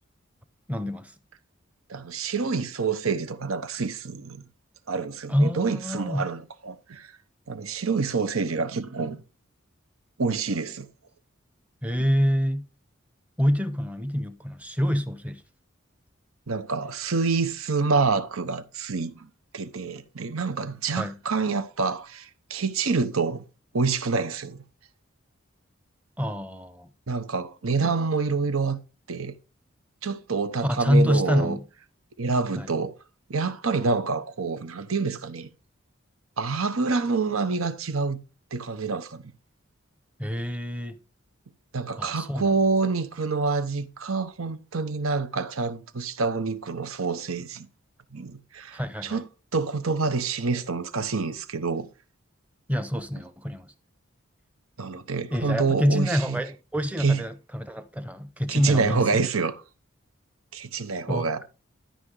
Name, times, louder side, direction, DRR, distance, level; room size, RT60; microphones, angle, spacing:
voice 1, 0.7-1.1 5.3-6.3 11.8-12.7 13.4-15.4 21.0-21.2 26.2-26.9 27.8-27.9 30.6-31.6 32.6-32.7 40.2-41.0 42.0-42.6 48.7-49.2 52.7-53.7 55.3-59.2 61.1-61.3, equal, 5° right, 0.7 m, -26 dB
voice 2, 1.9-4.4 4.9-7.1 7.5-9.2 10.2-10.9 16.5-23.4 23.7-24.6 27.1-28.8 29.1-29.3 30.0-31.6 32.2-32.9 33.3-35.5 36.4-38.2 38.5-39.3 41.7-47.7 48.1-49.3 49.5-51.9 54.8-56.4 57.0-57.2 58.5-59.6 60.5-61.4, right 4 dB, 90° right, 1.0 m, -27 dB
13.0 x 5.7 x 3.9 m
head